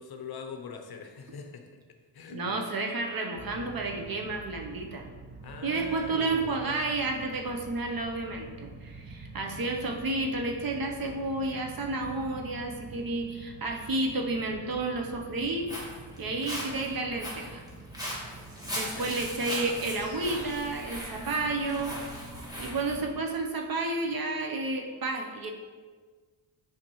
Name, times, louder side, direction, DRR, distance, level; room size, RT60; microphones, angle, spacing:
voice 1, 0.0-1.8 2.1-2.6 5.4-6.5 18.9-19.1, left 5 dB, 50° left, 4 dB, 0.7 m, -42 dB
voice 2, 2.3-5.1 5.6-15.7 16.2-17.6 18.7-22.0 22.6-25.5, right 2 dB, 45° right, 2 dB, 0.8 m, -31 dB
sound 1, 3.4-23.2, right 3 dB, 25° right, 0.3 m, -47 dB
Walk footsteps, 15.4-23.0, equal, 10° right, 1.4 m, -39 dB
sound 2, 19.9-23.9, right 2 dB, 75° right, 1.7 m, -50 dB
7.1 x 5.0 x 3.0 m, 1.5 s
cardioid pair, 110°, 49 cm